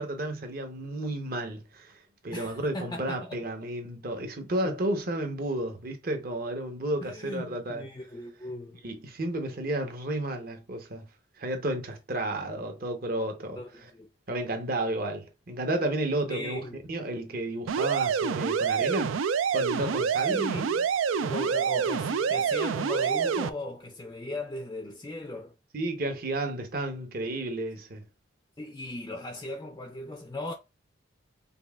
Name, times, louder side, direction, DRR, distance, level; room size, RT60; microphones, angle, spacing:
voice 1, 0.0-2.0 2.2-7.8 8.8-11.1 11.4-13.9 14.3-16.6 16.9-19.2 19.5-20.4 25.7-28.0, right 1 dB, 45° right, 0.9 m, -32 dB
voice 2, 2.3-3.4 7.0-8.8 13.6-14.1 16.3-16.8 20.3-20.9 21.2-25.5 28.6-30.5, left 1 dB, 20° left, 0.4 m, -38 dB
sound 1, 17.7-23.5, right 6 dB, 85° right, 0.4 m, -27 dB
5.2 x 2.3 x 2.3 m
head